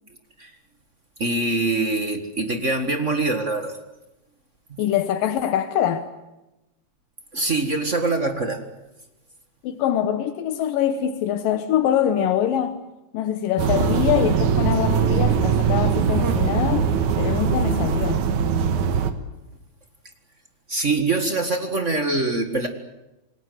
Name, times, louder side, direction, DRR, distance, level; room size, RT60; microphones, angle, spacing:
voice 1, 1.2-3.8 4.7-4.8 7.3-8.6 20.7-22.7, right 2 dB, 35° right, 6 dB, 1.3 m, -24 dB
voice 2, 4.8-6.1 9.6-12.8 13.1-16.9 17.2-18.2, left 10 dB, 85° left, 10 dB, 2.8 m, -24 dB
sound 1, 13.6-19.1, right 6 dB, 65° right, 2.7 m, -21 dB
27.0 x 20.0 x 9.4 m, 0.98 s
omnidirectional pair, 3.9 m